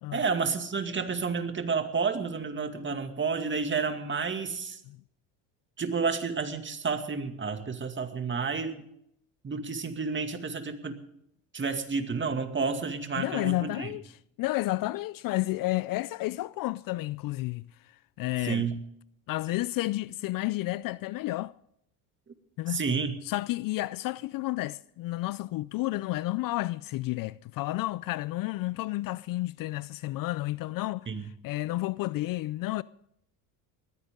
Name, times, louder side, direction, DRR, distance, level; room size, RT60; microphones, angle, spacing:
voice 1, 0.1-4.8 5.8-8.8 9.4-11.0 11.5-13.9 18.4-18.8 22.7-23.1 31.1-31.3, right 5 dB, 25° right, 2.2 m, -30 dB
voice 2, 13.2-14.0 14.4-18.7 19.3-21.5 22.6-22.8 23.2-32.8, left 18 dB, 55° left, 0.5 m, -31 dB
20.0 x 15.5 x 3.7 m
supercardioid pair, 90°, 42 cm